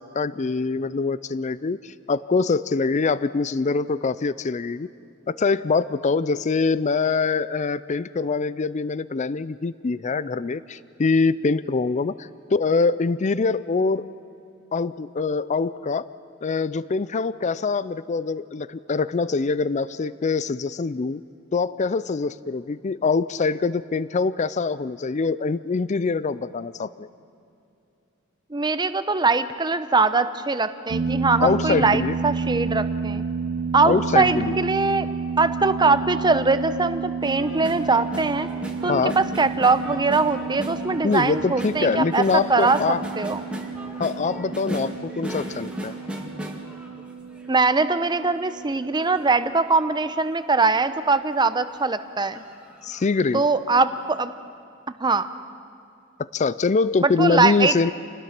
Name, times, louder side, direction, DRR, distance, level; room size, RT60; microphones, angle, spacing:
voice 1, 0.0-4.9 5.3-14.1 14.7-16.1 16.4-21.2 21.5-27.1 31.4-32.1 33.9-34.6 38.9-39.2 41.0-43.0 44.0-45.9 52.8-53.4 56.3-57.9, left 4 dB, 35° left, 17 dB, 0.4 m, -24 dB
voice 2, 28.5-33.2 33.7-35.1 35.4-38.5 38.8-42.2 42.5-42.8 43.2-43.5 47.5-52.4 53.3-54.3 55.0-55.3 57.0-57.9, right 3 dB, 20° right, 11 dB, 0.8 m, -22 dB
sound 1, 30.9-49.3, right 5 dB, 75° right, 1.0 m, -31 dB
sound 2, 37.2-47.6 48.0-50.4 51.0-51.1 51.4-51.6 52.2-53.1 53.5-53.6, equal, 5° right, 2.1 m, -37 dB
28.5 x 19.5 x 6.0 m, 2.6 s
head